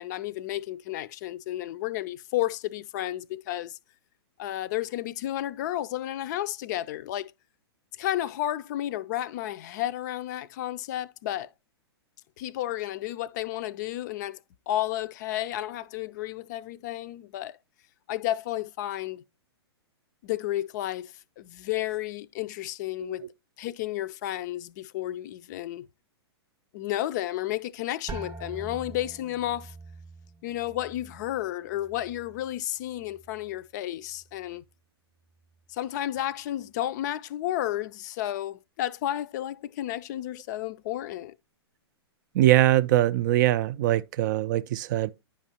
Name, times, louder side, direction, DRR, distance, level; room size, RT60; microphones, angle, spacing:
voice 1, 0.0-3.8 4.4-7.3 8.0-11.5 12.4-14.4 14.7-17.6 18.1-19.2 20.2-23.3 23.6-25.9 26.7-29.7 30.4-34.6 35.7-41.3, left 13 dB, 45° left, 0.4 m, -32 dB
sound 1, 28.1-33.7 34.0-34.7 35.3-35.7, right 4 dB, 20° right, 0.7 m, -45 dB
voice 2, 42.3-45.1, right 14 dB, 45° right, 0.4 m, -22 dB
9.7 x 5.1 x 2.8 m
figure-of-eight pair, 115°, 14 cm